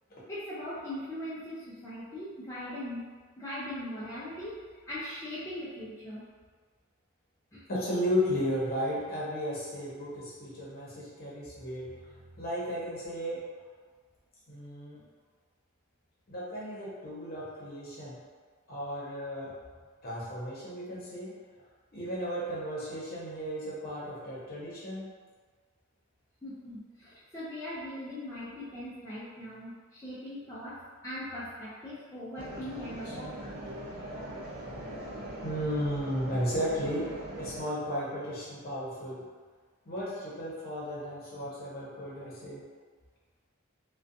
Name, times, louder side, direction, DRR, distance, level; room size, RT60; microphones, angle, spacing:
voice 1, 0.3-3.0 3.4-4.6 4.9-6.2 7.5-7.7 26.4-33.5, left 1 dB, 15° left, -10 dB, 0.4 m, -40 dB
voice 2, 7.7-11.9 12.3-13.4 14.5-15.0 16.3-18.2 18.7-19.5 20.0-21.3 21.9-25.1 33.0-33.2 35.4-39.2 39.9-42.6, equal, 45° left, -7 dB, 0.8 m, -34 dB
sound 1, 32.4-37.6, right 1 dB, 70° right, 0.6 m, -41 dB
2.4 x 2.2 x 2.5 m, 1.5 s
head